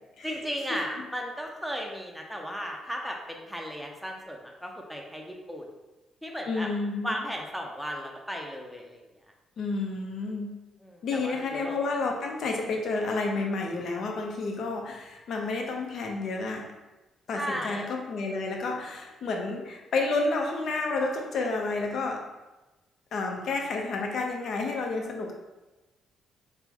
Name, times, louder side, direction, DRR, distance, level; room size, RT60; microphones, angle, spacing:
voice 1, 0.2-5.7 6.2-6.7 7.0-9.0 10.8-11.8 17.3-17.9, equal, ahead, 0 dB, 0.5 m, -35 dB
voice 2, 6.5-7.1 9.6-10.5 11.0-16.7 17.3-22.2 23.1-25.3, left 3 dB, 65° left, 2 dB, 0.5 m, -30 dB
3.2 x 2.0 x 3.4 m, 1.1 s
cardioid pair, 90°, 0 cm